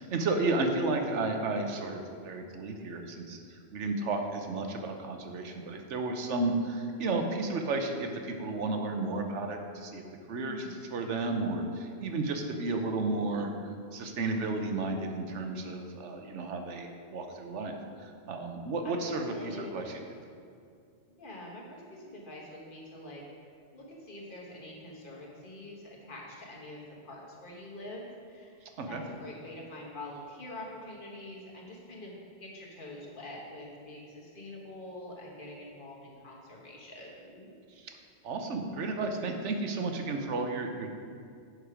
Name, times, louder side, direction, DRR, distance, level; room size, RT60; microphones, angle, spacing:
voice 1, 0.0-3.4 3.7-10.0 10.3-13.5 13.9-17.7 18.0-19.9 28.8-29.0 38.2-40.9, right 3 dB, 75° right, 4 dB, 1.2 m, -32 dB
voice 2, 10.4-10.8 18.8-19.7 21.2-23.2 23.7-28.6 28.9-37.5, left 1 dB, 45° left, -3 dB, 1.6 m, -45 dB
8.0 x 6.3 x 4.9 m, 2.3 s
omnidirectional pair, 1.2 m